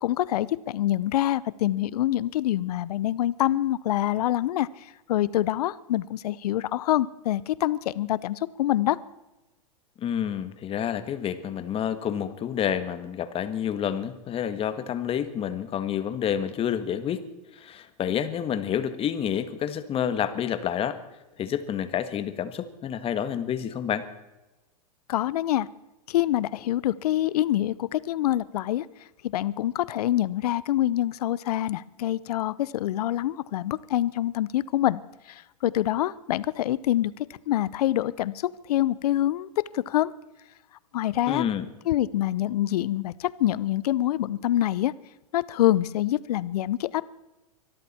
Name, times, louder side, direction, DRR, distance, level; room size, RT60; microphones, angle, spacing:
voice 1, 0.0-9.0 25.1-25.7 26.1-28.9 29.2-35.0 35.3-37.1 37.5-39.5 39.7-40.1 40.9-41.4 41.9-44.9 45.3-47.0, left 13 dB, 70° left, 20 dB, 0.8 m, -25 dB
voice 2, 10.0-17.2 17.5-21.0 21.4-24.0 41.3-41.6, left 9 dB, 25° left, 11 dB, 1.6 m, -29 dB
24.0 x 13.0 x 4.4 m, 1.0 s
hypercardioid pair, 110°, 21 cm